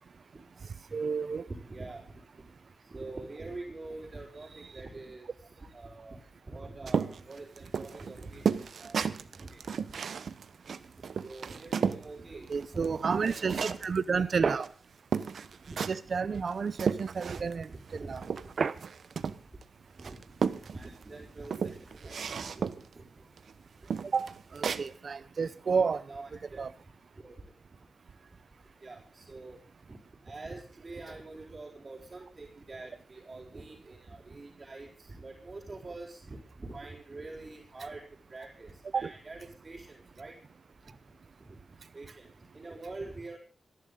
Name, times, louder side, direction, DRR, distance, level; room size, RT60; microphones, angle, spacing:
voice 1, 0.9-1.4 12.5-14.7 15.9-18.2 18.6-18.8 24.1-26.0 26.6-26.7 38.9-39.1, right 5 dB, 55° right, 16 dB, 0.6 m, -30 dB
voice 2, 1.5-2.0 2.4-2.5 2.8-5.3 5.6-6.2 6.5-9.9 11.0-13.8 14.1-14.2 15.7-15.8 17.3-18.3 20.0-23.2 26.1-27.5 28.8-29.6 29.9-30.0 30.2-38.0 38.3-40.4 41.4-41.6 41.9-43.4, right 2 dB, 30° right, -4 dB, 4.9 m, -45 dB
sound 1, 6.9-12.1 12.5-14.0 14.6-14.7 15.1-16.1 16.5-17.6 17.9-19.6 20.0-21.0 21.4-22.9 23.4-23.5 23.9-24.9, right 6 dB, 70° right, 1.0 m, -33 dB
26.5 x 11.5 x 3.8 m, 0.38 s
wide cardioid pair, 100°, 0 cm